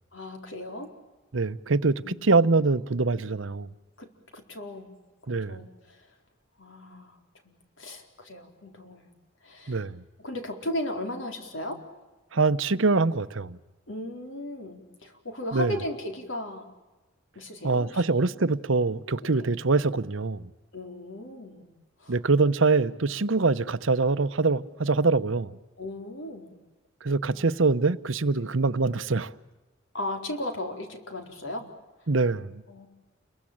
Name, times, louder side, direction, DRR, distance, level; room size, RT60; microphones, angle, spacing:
voice 1, 0.1-0.9 1.8-2.3 4.0-4.9 5.2-6.1 6.6-7.2 7.4-9.1 9.4-9.8 10.2-11.8 13.9-16.7 17.3-18.0 19.2-19.5 20.7-21.7 22.0-22.2 23.2-23.4 25.8-26.5 27.3-27.5 28.3-28.5 29.9-31.7 32.7-32.9, left 1 dB, 70° left, 4.3 m, -36 dB
voice 2, 1.3-3.7 5.3-5.6 9.7-10.0 12.3-13.6 15.5-15.7 17.6-20.5 22.1-25.5 27.0-29.3 32.1-32.6, right 3 dB, 75° right, 0.9 m, -24 dB
29.5 x 22.5 x 8.8 m
head